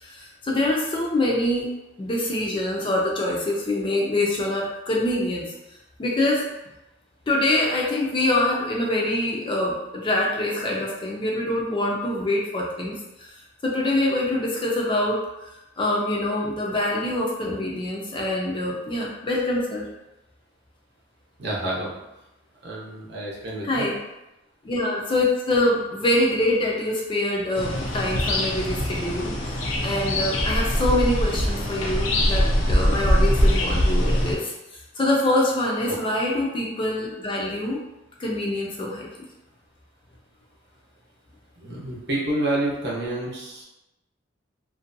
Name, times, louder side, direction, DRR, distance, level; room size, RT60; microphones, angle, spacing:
voice 1, 0.0-1.7 2.0-5.5 6.0-6.5 7.3-13.3 13.6-15.2 15.8-19.9 23.6-23.9 24.6-29.3 29.8-34.5 35.0-37.8 38.2-39.1, left 1 dB, 25° left, -3 dB, 0.4 m, -25 dB
voice 2, 21.4-21.9 22.6-23.9 35.9-36.0 41.6-43.6, right 1 dB, 60° right, -4 dB, 0.7 m, -28 dB
sound 1, 27.5-34.4, equal, 80° left, 0.5 m, -22 dB
2.6 x 2.2 x 2.5 m, 0.94 s
head